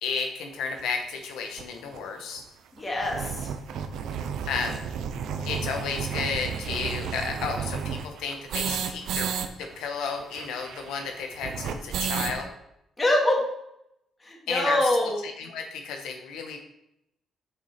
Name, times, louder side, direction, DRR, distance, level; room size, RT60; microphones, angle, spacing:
voice 1, 0.0-2.4 4.5-4.8 5.4-9.3 9.6-12.5 14.5-16.6, left 5 dB, 90° left, 4 dB, 1.2 m, -32 dB
sound 1, 0.8-0.9 1.6-1.7 1.9-2.0 2.3-2.4 2.8-9.5 9.7-9.8 10.0-12.4, right 7 dB, 80° right, 0.6 m, -32 dB
voice 2, 2.8-3.5 13.0-13.4 14.2-15.2, left 1 dB, 25° left, -1 dB, 2.0 m, -24 dB
6.4 x 5.9 x 4.3 m, 0.81 s
cardioid pair, 90°, 0 cm